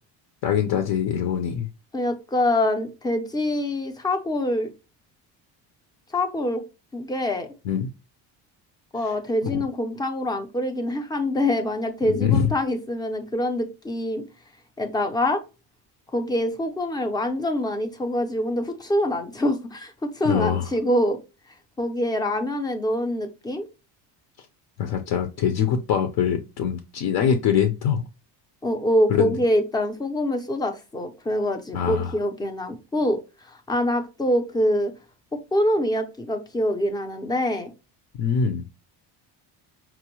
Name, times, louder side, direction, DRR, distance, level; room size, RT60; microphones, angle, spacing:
voice 1, 0.4-1.7 7.6-7.9 12.0-12.5 20.2-20.7 24.8-28.0 29.1-29.4 31.7-32.1 38.1-38.6, left 8 dB, 65° left, 0.7 m, -23 dB
voice 2, 1.9-4.7 6.1-6.6 6.9-7.5 8.9-14.2 14.8-15.4 16.1-21.2 21.8-23.7 28.6-33.2 33.4-34.9 35.5-37.7, left 1 dB, 10° left, 0.4 m, -25 dB
5.9 x 2.1 x 2.9 m
cardioid pair, 170°, 41 cm